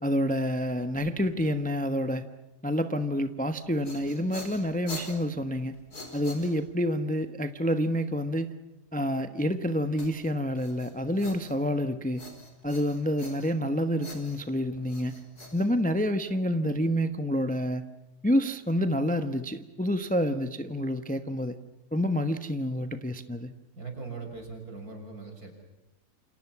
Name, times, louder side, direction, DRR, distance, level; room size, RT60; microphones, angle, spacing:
voice 1, 0.0-2.2 2.6-5.7 6.1-8.5 8.9-12.2 12.6-15.2 15.5-17.9 18.2-21.6 21.9-23.5, equal, 5° left, 9 dB, 1.0 m, -28 dB
sound 1, 3.6-6.9 10.0-11.8 12.2-13.7 14.0-16.3, left 1 dB, 70° left, 5.3 m, -45 dB
voice 2, 23.7-25.6, right 4 dB, 65° right, 4 dB, 6.8 m, -40 dB
29.0 x 27.5 x 6.1 m, 1.0 s
omnidirectional pair, 1.7 m